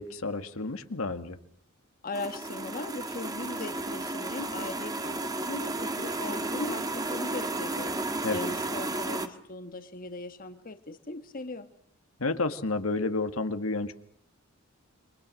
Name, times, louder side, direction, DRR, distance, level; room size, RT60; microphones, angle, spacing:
voice 1, 0.0-1.4 8.2-8.4 12.2-13.9, left 3 dB, 75° left, 8 dB, 1.8 m, -30 dB
voice 2, 2.0-7.9 8.3-11.7, left 2 dB, 40° left, 8 dB, 1.5 m, -38 dB
sound 1, 2.1-9.3, right 2 dB, 20° right, 1.6 m, -33 dB
28.5 x 24.0 x 6.4 m, 0.65 s
head